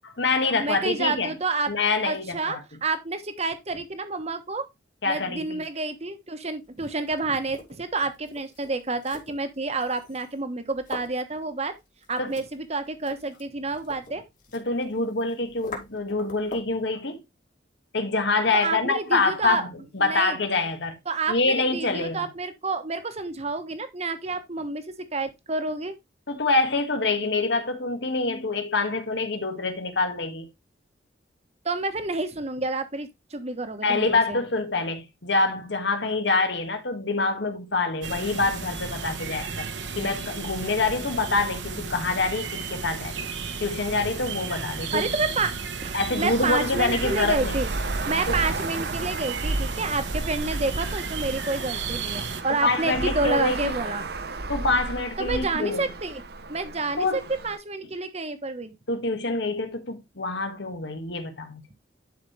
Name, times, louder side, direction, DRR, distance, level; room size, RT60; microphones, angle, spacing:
voice 1, 0.0-1.3 1.7-2.6 5.0-5.6 12.2-12.3 14.5-17.2 17.9-21.0 21.3-22.3 26.3-30.5 33.8-39.7 40.0-43.3 43.6-45.1 45.9-47.6 48.3-48.4 52.5-53.7 54.5-55.9 57.0-57.2 58.9-61.6, left 3 dB, 70° left, 1.6 m, -26 dB
voice 2, 0.6-1.7 2.0-4.6 5.1-11.7 12.1-14.2 18.6-19.7 20.0-20.4 21.1-26.0 31.6-34.4 44.9-45.5 45.8-47.7 48.1-54.1 55.2-56.2 56.5-58.7, right 3 dB, 35° right, 1.2 m, -29 dB
sound 1, 6.6-16.8, left 3 dB, 50° left, 2.4 m, -45 dB
sound 2, 38.0-52.4, right 5 dB, 75° right, 1.2 m, -34 dB
Traffic noise roadway noise, 46.2-57.6, right 2 dB, 60° right, 0.9 m, -33 dB
11.0 x 4.9 x 3.3 m
head